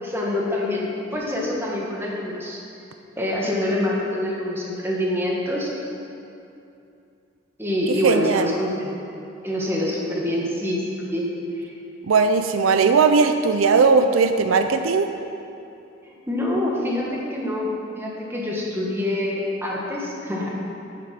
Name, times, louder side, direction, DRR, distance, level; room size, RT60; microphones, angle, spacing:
voice 1, 0.0-2.6 3.2-5.7 7.6-8.9 9.4-11.3 11.5-11.7 16.0-17.7 17.9-20.5, left 1 dB, 10° right, -3 dB, 1.5 m, -26 dB
voice 2, 7.9-8.5 12.1-15.1, right 4 dB, 80° right, 8 dB, 0.5 m, -18 dB
8.5 x 7.7 x 5.9 m, 2.7 s
head